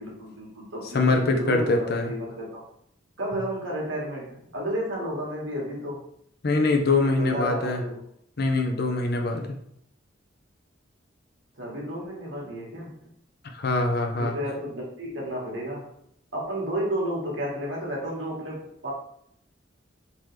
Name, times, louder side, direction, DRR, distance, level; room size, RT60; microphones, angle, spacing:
voice 1, 0.0-2.6 3.2-6.1 7.0-7.9 11.6-13.1 14.2-15.9 16.3-18.9, equal, 85° right, -3 dB, 1.4 m, -32 dB
voice 2, 0.9-2.1 6.4-7.8 8.4-9.5 13.5-14.4, left 3 dB, 55° left, 4 dB, 0.6 m, -23 dB
3.8 x 2.9 x 3.2 m, 0.70 s
head